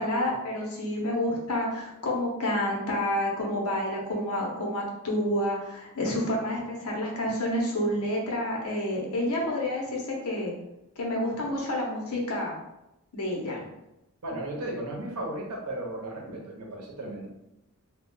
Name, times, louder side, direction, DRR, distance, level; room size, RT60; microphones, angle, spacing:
voice 1, 0.0-10.5 11.0-12.5 13.1-13.6, left 1 dB, 80° left, -1 dB, 0.8 m, -29 dB
voice 2, 14.2-17.3, right 1 dB, 85° right, -1 dB, 0.8 m, -35 dB
2.2 x 2.2 x 3.8 m, 0.91 s
head